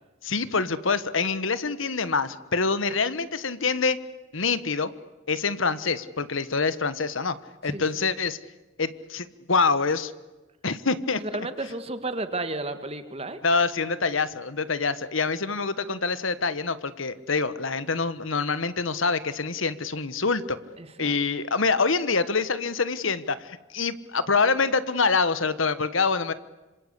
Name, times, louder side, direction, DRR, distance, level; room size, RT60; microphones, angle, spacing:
voice 1, 0.2-4.0 4.3-4.9 5.3-7.4 7.6-8.4 8.8-10.1 10.6-11.2 13.4-20.6 21.0-26.3, left 4 dB, 75° left, 14 dB, 1.3 m, -25 dB
voice 2, 11.2-13.4 20.8-21.2, right 2 dB, 30° right, 10 dB, 1.9 m, -32 dB
26.5 x 26.0 x 8.3 m, 1.1 s
head